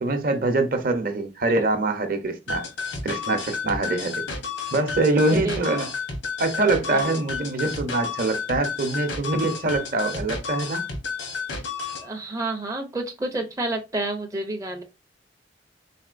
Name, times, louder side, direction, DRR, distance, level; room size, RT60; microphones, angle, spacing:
voice 1, 0.0-2.7 3.0-4.2 4.7-5.9 6.4-10.9, right 2 dB, 50° right, 0.7 m, -24 dB
sound 1, 2.5-12.1, left 5 dB, 85° left, 1.0 m, -31 dB
voice 2, 5.3-5.9 6.9-7.2 12.0-14.8, right 2 dB, 15° right, 0.5 m, -30 dB
4.1 x 3.6 x 2.5 m
head